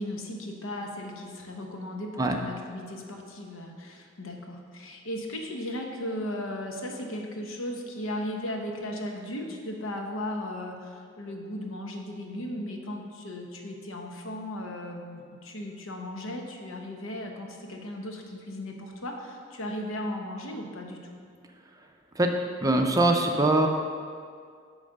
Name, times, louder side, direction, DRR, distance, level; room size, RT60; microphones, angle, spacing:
voice 1, 0.0-21.2, left 1 dB, 85° left, 2 dB, 0.9 m, -36 dB
voice 2, 22.6-23.7, right 2 dB, 15° right, 3 dB, 0.5 m, -22 dB
8.7 x 3.3 x 6.5 m, 2.1 s
head